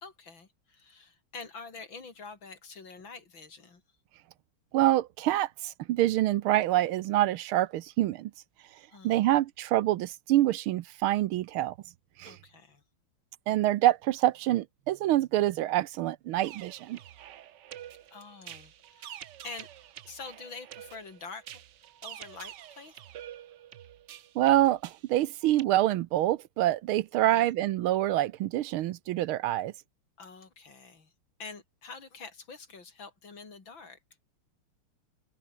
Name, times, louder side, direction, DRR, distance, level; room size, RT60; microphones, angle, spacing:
voice 1, 0.0-3.8 8.9-9.4 12.3-12.8 18.1-19.7 20.0-21.5 22.0-23.0 27.1-27.5 30.2-31.1 31.4-34.0, left 4 dB, 60° left, 4.2 m, -46 dB
voice 2, 4.7-8.3 9.0-11.7 12.2-12.3 13.5-17.0 24.3-29.7, right 14 dB, 75° right, 1.5 m, -26 dB
sound 1, 16.4-25.7, right 11 dB, 60° right, 1.3 m, -47 dB
open air
omnidirectional pair, 2.4 m